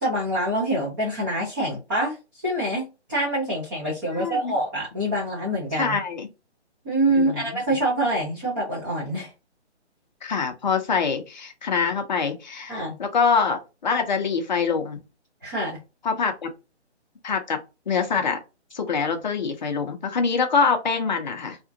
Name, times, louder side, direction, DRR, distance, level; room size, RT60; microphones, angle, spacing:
voice 1, 0.0-2.2 2.4-6.0 6.8-9.3 12.7-13.0 15.4-15.8, right 1 dB, 15° right, 0.7 m, -25 dB
voice 2, 4.1-4.6 5.8-6.3 7.1-7.8 10.2-15.0 16.0-16.5 17.2-17.6 17.9-18.4 18.7-21.6, left 5 dB, 40° left, 0.6 m, -25 dB
2.8 x 2.4 x 2.5 m
hypercardioid pair, 160°, 35 cm